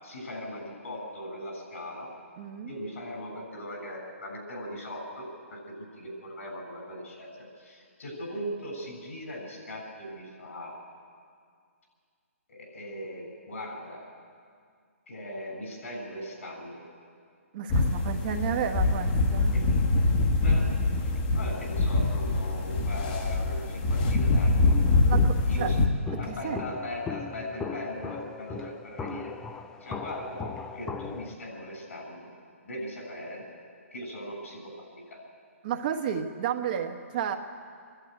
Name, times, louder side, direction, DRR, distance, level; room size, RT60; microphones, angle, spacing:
voice 1, 0.0-2.1 2.7-7.3 7.6-10.8 12.5-14.1 15.1-16.8 19.5-19.7 20.4-24.7 25.5-25.8 26.2-29.4 29.8-32.3 32.6-33.5 33.9-35.2, equal, 75° left, 1 dB, 7.3 m, -39 dB
voice 2, 2.4-2.7 17.5-19.6 25.0-25.7 26.1-26.6 35.6-37.4, right 8 dB, 40° right, 4 dB, 1.4 m, -32 dB
sound 1, 17.7-25.9, left 2 dB, 35° left, 1.7 m, -24 dB
Walk footsteps, 24.7-31.3, left 5 dB, 10° left, 0.5 m, -38 dB
24.5 x 11.5 x 9.4 m, 2.2 s
hypercardioid pair, 155°, 8 cm